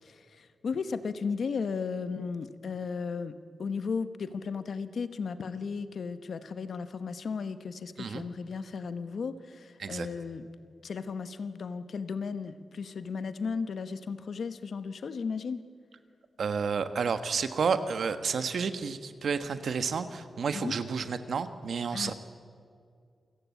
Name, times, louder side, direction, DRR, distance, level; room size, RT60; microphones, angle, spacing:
voice 1, 0.0-10.5 10.8-15.6 20.5-20.7 21.9-22.1, left 5 dB, 60° left, 11 dB, 1.1 m, -35 dB
voice 2, 16.4-22.1, right 5 dB, 65° right, 10 dB, 1.4 m, -31 dB
28.5 x 16.5 x 8.5 m, 2.2 s
wide cardioid pair, 175°, 0 cm